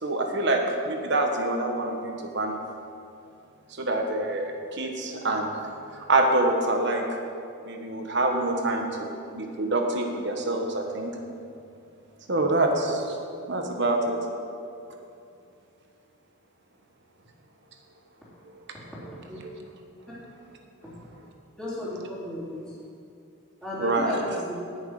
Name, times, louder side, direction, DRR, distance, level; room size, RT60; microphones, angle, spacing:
voice 1, 0.0-2.6 3.7-5.5 5.9-7.1 7.6-11.1 12.3-13.2 13.5-14.2 19.4-19.6 23.8-24.1, right 2 dB, 55° right, 2 dB, 1.4 m, -26 dB
voice 2, 21.6-22.8 23.6-24.5, left 1 dB, 5° left, -11 dB, 3.3 m, -34 dB
18.5 x 6.4 x 4.9 m, 2.6 s
head